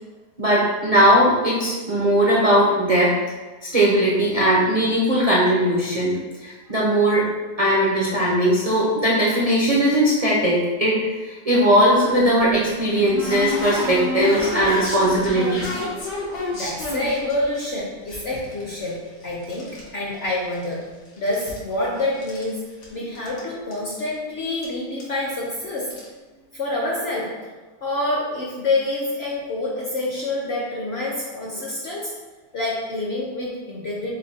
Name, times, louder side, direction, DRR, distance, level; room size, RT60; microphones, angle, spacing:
voice 1, 0.4-3.1 3.6-7.3 7.6-15.9, equal, 55° right, -6 dB, 0.4 m, -19 dB
sound 1, 12.2-17.6 18.1-19.9 20.1-20.9 21.2-22.5 22.8-22.9 23.1-23.4 23.7-23.8 24.6-24.7 25.0-25.2 25.8-26.1, left 1 dB, 85° left, 1.6 m, -30 dB
voice 2, 16.5-20.8 21.2-22.6 22.9-25.9 26.5-27.3 27.8-32.1 32.5-34.1, left 2 dB, 55° left, -4 dB, 0.7 m, -27 dB
5.5 x 2.1 x 4.0 m, 1.3 s
omnidirectional pair, 1.8 m